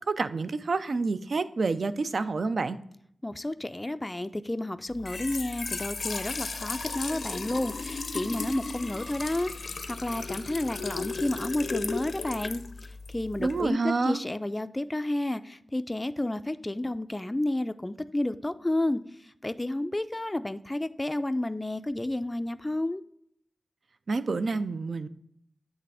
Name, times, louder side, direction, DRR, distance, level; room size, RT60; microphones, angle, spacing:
voice 1, 0.1-2.8 13.4-14.2 24.1-25.1, right 3 dB, 70° right, 13 dB, 0.4 m, -28 dB
voice 2, 3.2-23.0, left 1 dB, 20° left, 11 dB, 0.3 m, -31 dB
Trickle dribble / Fill (with liquid), 4.9-13.7, left 4 dB, 75° left, 0.5 m, -35 dB
8.2 x 3.3 x 4.8 m, 0.69 s
wide cardioid pair, 70°, 0 cm